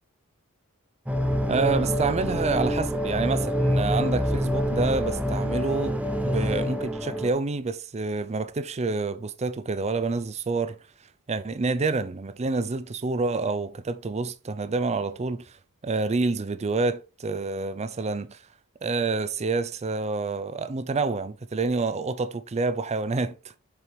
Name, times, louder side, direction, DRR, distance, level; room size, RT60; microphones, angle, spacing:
sound 1, 1.1-7.3, equal, 5° right, 0.9 m, -26 dB
voice 1, 1.5-10.8 11.3-15.6 15.8-18.4 18.8-23.5, right 3 dB, 30° right, 0.5 m, -28 dB
6.9 x 5.1 x 4.5 m
head